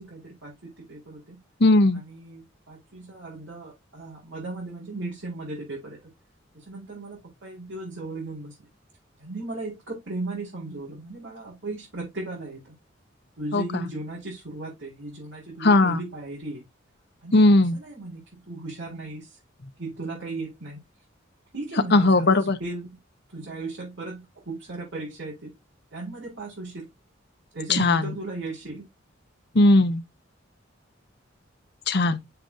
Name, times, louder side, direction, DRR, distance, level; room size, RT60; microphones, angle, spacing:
voice 1, 0.0-1.4 1.9-6.1 6.5-8.7 9.2-12.7 13.4-16.6 17.2-19.4 19.8-20.8 21.5-23.0 23.3-25.5 25.9-26.9 27.5-28.9, right 2 dB, 65° right, 5.0 m, -36 dB
voice 2, 1.6-2.0 13.5-13.6 15.6-16.0 17.3-17.8 21.9-22.6 27.7-28.1 29.5-30.0 31.9-32.2, left 2 dB, 60° left, 0.9 m, -18 dB
7.7 x 6.8 x 2.6 m
head